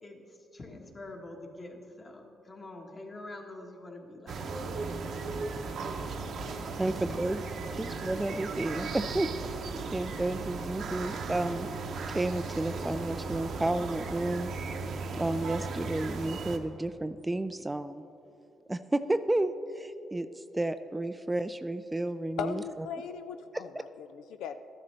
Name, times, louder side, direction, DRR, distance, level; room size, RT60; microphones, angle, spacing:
voice 1, 0.0-4.5, left 2 dB, 35° left, 2 dB, 1.5 m, -45 dB
sound 1, 4.3-16.6, right 4 dB, 65° right, 0.8 m, -36 dB
voice 2, 6.8-7.4 7.7-9.6 9.9-11.7 12.1-14.5 15.2-18.0 18.7-22.6 23.5-23.6, right 2 dB, 15° right, 11 dB, 0.3 m, -31 dB
voice 3, 22.4-24.6, left 7 dB, 90° left, 9 dB, 0.4 m, -38 dB
12.5 x 11.5 x 3.3 m, 2.8 s
cardioid pair, 90°, 0 cm